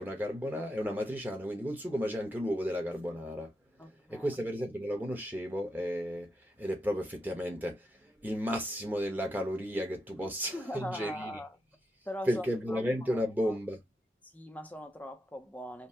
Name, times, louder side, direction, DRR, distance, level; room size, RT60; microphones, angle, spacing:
voice 1, 0.0-3.5 4.1-6.3 6.6-11.4 12.3-13.8, equal, 10° right, 1.0 m, -33 dB
voice 2, 3.8-4.4 10.2-11.6 12.1-12.8 13.1-13.6 14.2-15.9, equal, 10° left, 0.6 m, -42 dB
5.3 x 2.2 x 2.8 m
head